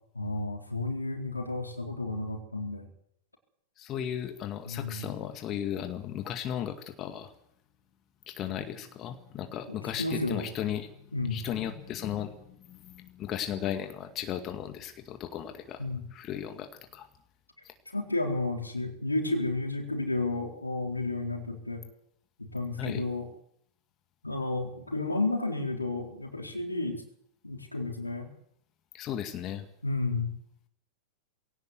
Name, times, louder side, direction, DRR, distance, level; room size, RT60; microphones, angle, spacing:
voice 1, 0.1-2.9 4.6-5.1 10.0-10.5 11.1-11.4 15.8-16.0 17.9-21.8 22.4-23.3 24.2-27.0 27.4-28.3 29.8-30.3, left 2 dB, 85° left, 3 dB, 4.1 m, -32 dB
voice 2, 3.8-7.3 8.3-15.8 16.1-17.1 17.6-17.7 22.8-23.0 28.9-29.7, left 10 dB, 30° left, 7 dB, 2.1 m, -36 dB
21.0 x 17.5 x 8.2 m, 0.70 s
figure-of-eight pair, 95°, 0 cm